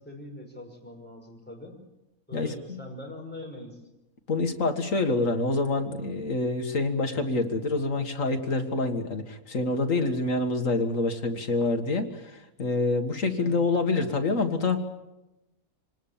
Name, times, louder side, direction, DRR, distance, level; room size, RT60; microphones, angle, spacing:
voice 1, 0.0-1.8 2.3-3.8 13.4-13.6, left 1 dB, 5° left, 0 dB, 5.7 m, -42 dB
voice 2, 2.3-2.8 4.3-14.8, left 3 dB, 60° left, 5 dB, 2.1 m, -27 dB
26.0 x 19.5 x 7.2 m, 0.97 s
omnidirectional pair, 1.5 m